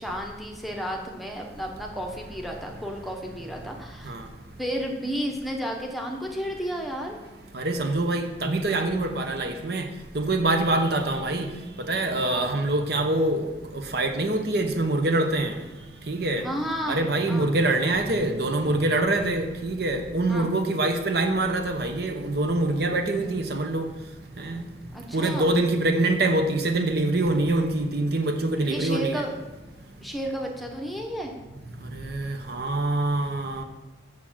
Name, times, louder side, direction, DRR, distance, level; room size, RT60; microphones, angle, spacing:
voice 1, 0.0-4.1 4.6-7.2 12.3-12.5 16.4-17.5 20.3-20.5 24.9-25.5 28.6-29.3 30.0-31.4, equal, ahead, 1 dB, 1.0 m, -32 dB
voice 2, 7.5-9.9 10.1-11.5 11.9-13.4 13.7-15.5 16.1-16.4 16.9-23.9 24.4-24.7 25.1-29.2 31.9-33.6, right 2 dB, 55° right, 6 dB, 0.9 m, -25 dB
6.8 x 6.0 x 7.4 m, 1.2 s
head